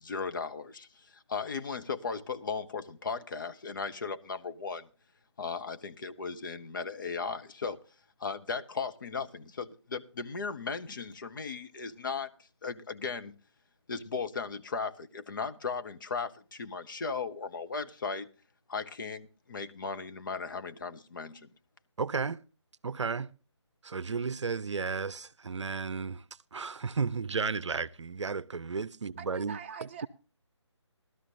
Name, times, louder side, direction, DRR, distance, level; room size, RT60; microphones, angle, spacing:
voice 1, 0.0-4.9 5.4-7.8 8.2-12.3 12.6-13.3 13.9-18.3 18.7-21.5, left 5 dB, 45° left, 0.7 m, -37 dB
voice 2, 22.0-22.4 22.8-23.3 23.8-26.2 26.5-30.1, right 5 dB, 70° right, 0.6 m, -33 dB
voice 3, 29.2-30.1, right 7 dB, 25° right, 0.7 m, -43 dB
18.0 x 12.5 x 2.5 m
figure-of-eight pair, 155°, 15 cm